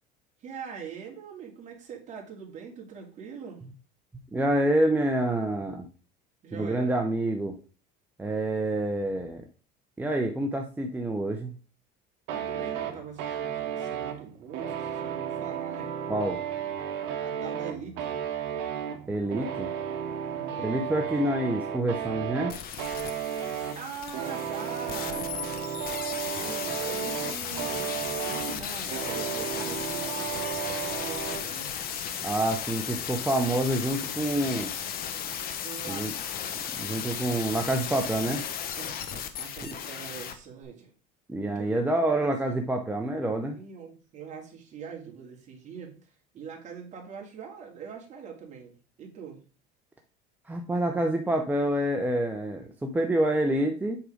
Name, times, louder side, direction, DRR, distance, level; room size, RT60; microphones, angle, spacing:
voice 1, 0.4-3.6 6.4-6.9 12.3-15.9 17.2-18.2 20.3-20.6 23.5-25.3 26.3-31.8 35.6-36.1 38.8-40.9 41.5-42.3 43.5-49.4, right 6 dB, 35° right, 1 dB, 2.2 m, -43 dB
voice 2, 4.3-5.8 6.5-7.6 8.2-9.4 10.0-11.5 16.1-16.4 19.1-19.7 20.6-22.5 32.2-34.7 35.9-36.1 36.7-38.4 41.3-43.6 50.5-54.0, right 1 dB, 10° right, 3 dB, 0.7 m, -27 dB
sound 1, 12.3-31.5, right 8 dB, 60° right, 1.3 m, -34 dB
sound 2, 22.5-40.3 40.6-40.7, left 9 dB, 45° left, 0.9 m, -35 dB
8.1 x 3.8 x 5.0 m, 0.36 s
cardioid pair, 140°, 21 cm